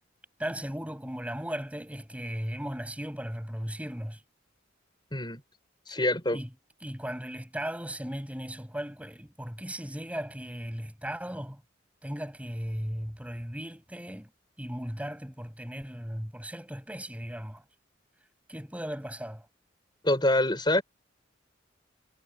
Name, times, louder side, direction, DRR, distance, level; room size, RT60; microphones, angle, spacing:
voice 1, 0.4-4.2 5.9-6.0 6.3-6.5 6.8-11.6 12.0-14.3 14.6-17.6 18.5-19.5, equal, 5° right, 7.2 m, -37 dB
voice 2, 5.9-6.4 20.0-20.8, left 1 dB, 25° left, 5.1 m, -25 dB
head